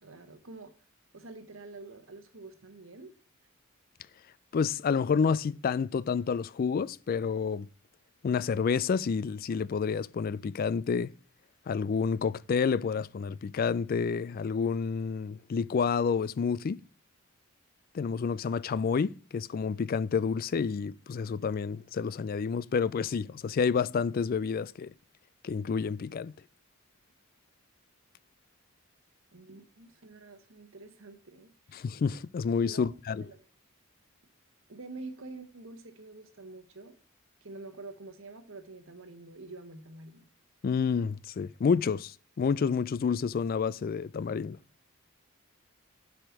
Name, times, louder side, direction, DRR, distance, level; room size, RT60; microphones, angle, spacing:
voice 1, 0.0-0.7 1.1-3.1 29.3-31.8 32.7-32.9 33.2-33.5 34.7-37.0 37.4-40.3, right 3 dB, 65° right, 1.1 m, -47 dB
voice 2, 4.5-7.7 8.2-11.1 11.7-16.8 17.9-24.9 25.4-26.3 31.7-33.2 40.6-44.6, left 5 dB, 40° left, 0.3 m, -29 dB
7.5 x 5.0 x 7.1 m
head